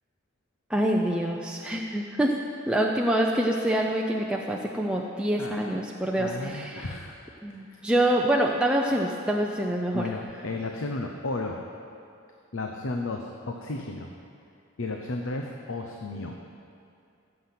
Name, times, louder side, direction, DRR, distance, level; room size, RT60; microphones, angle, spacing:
voice 1, 0.7-2.3 2.7-6.9 7.4-10.0, right 1 dB, 5° right, -1 dB, 0.5 m, -26 dB
voice 2, 5.4-5.8 6.2-7.2 7.5-7.8 9.9-11.6 12.5-14.1 14.8-16.4, left 2 dB, 80° left, 2 dB, 0.8 m, -33 dB
16.0 x 7.8 x 5.9 m, 2.6 s
head